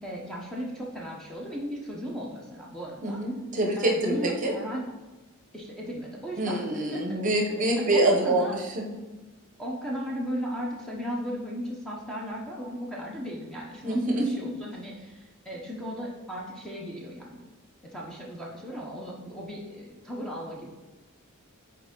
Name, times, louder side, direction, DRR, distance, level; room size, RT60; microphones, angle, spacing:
voice 1, 0.0-3.2 3.8-4.9 5.5-7.2 7.8-8.5 9.6-17.4 17.9-20.7, equal, ahead, -4 dB, 0.8 m, -36 dB
voice 2, 3.0-4.5 6.4-8.9 13.8-14.3, right 1 dB, 35° right, 0 dB, 0.9 m, -25 dB
5.9 x 4.4 x 3.8 m, 1.2 s
head